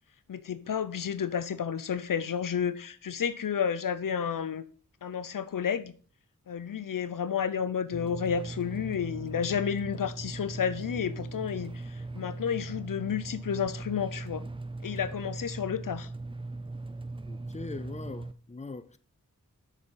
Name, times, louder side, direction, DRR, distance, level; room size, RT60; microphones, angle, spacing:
voice 1, 0.3-4.6 5.0-5.9 6.5-14.4 14.8-16.1, left 7 dB, 80° left, 0.6 m, -31 dB
sound 1, 7.9-18.3, right 2 dB, 15° right, 0.4 m, -39 dB
voice 2, 17.3-19.0, left 3 dB, 20° left, 0.7 m, -41 dB
6.6 x 6.3 x 5.3 m
wide cardioid pair, 50°, 32 cm